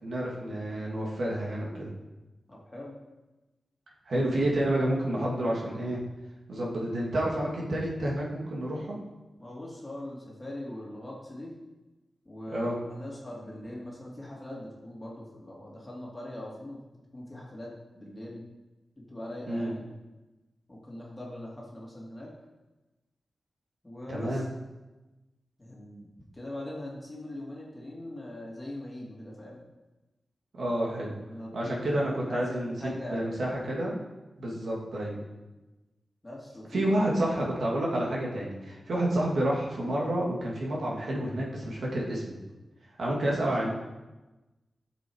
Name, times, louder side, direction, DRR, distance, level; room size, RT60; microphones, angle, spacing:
voice 1, 0.0-1.9 4.1-6.0 6.5-9.0 12.5-12.8 19.5-19.7 24.1-24.4 30.5-31.1 31.5-33.9 34.4-35.2 36.7-42.4 43.0-43.7, right 1 dB, 70° right, -3 dB, 2.5 m, -29 dB
voice 2, 2.5-3.0 9.4-11.6 12.2-17.7 17.9-18.4 19.0-19.8 20.7-22.3 23.8-24.5 25.6-29.6 31.2-33.5 36.2-36.9, left 1 dB, 15° left, -4 dB, 2.7 m, -41 dB
14.5 x 7.2 x 4.7 m, 1.1 s
wide cardioid pair, 175°, 0 cm